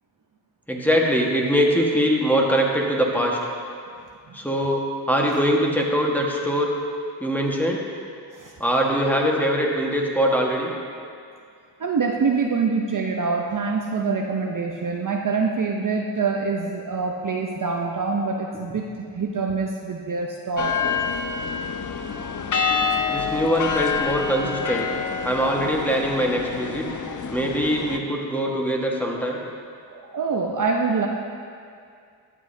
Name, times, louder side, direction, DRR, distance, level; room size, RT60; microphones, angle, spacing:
voice 1, 0.7-3.4 4.3-6.7 7.2-7.8 8.6-10.7 23.1-24.9 25.2-26.9 27.3-29.4, equal, 5° left, -1 dB, 1.4 m, -22 dB
voice 2, 11.8-20.9 29.9-31.1, right 4 dB, 45° right, 1 dB, 0.7 m, -25 dB
sound 1, 20.6-28.0, left 6 dB, 45° left, 0.6 m, -27 dB
12.0 x 7.7 x 2.7 m, 2.3 s
cardioid pair, 45°, 46 cm